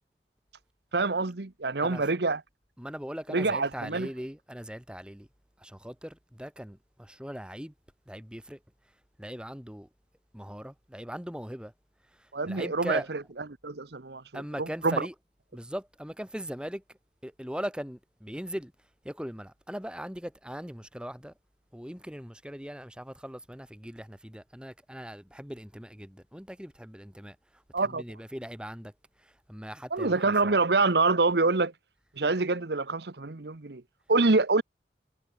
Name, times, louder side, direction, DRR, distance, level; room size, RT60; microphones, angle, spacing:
voice 1, 0.9-2.4 3.3-4.1 12.3-13.2 13.6-15.1 27.7-28.0 29.9-31.7 32.2-33.8 34.1-34.6, right 3 dB, 70° right, 1.0 m, -26 dB
voice 2, 2.8-5.3 5.6-7.7 8.1-8.6 9.2-9.9 10.3-11.7 12.2-13.1 14.3-15.1 15.5-16.8 17.2-18.7 19.0-21.3 21.7-27.4 27.8-28.9 29.2-30.6, equal, 5° right, 2.3 m, -39 dB
head